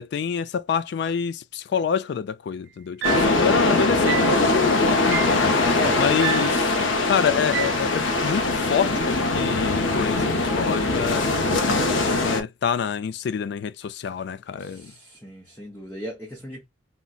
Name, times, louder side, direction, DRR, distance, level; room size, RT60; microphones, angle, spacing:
voice 1, 0.0-5.4 6.0-6.7 7.0-11.3 11.7-14.9, left 7 dB, 60° left, 0.3 m, -27 dB
sound 1, 3.0-12.4, left 2 dB, 80° left, 0.7 m, -22 dB
sound 2, 3.0-3.4 4.1-4.4 5.1-5.4 6.2-6.6 7.5-7.9, right 12 dB, 60° right, 0.4 m, -29 dB
voice 2, 14.6-16.7, equal, 10° left, 0.6 m, -36 dB
3.7 x 2.1 x 2.3 m
head